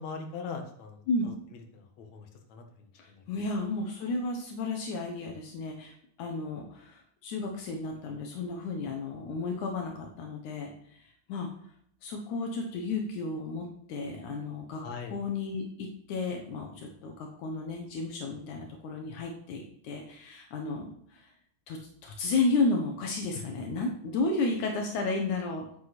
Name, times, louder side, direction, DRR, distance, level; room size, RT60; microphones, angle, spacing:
voice 1, 0.0-1.3 1.7-3.2 14.8-15.2 23.3-23.4, left 5 dB, 65° left, 4 dB, 1.8 m, -41 dB
voice 2, 3.0-10.7 11.3-11.5 12.0-14.8 15.1-21.3 21.7-25.7, left 3 dB, 80° left, 2 dB, 1.7 m, -33 dB
9.8 x 9.4 x 4.2 m, 0.65 s
omnidirectional pair, 5.3 m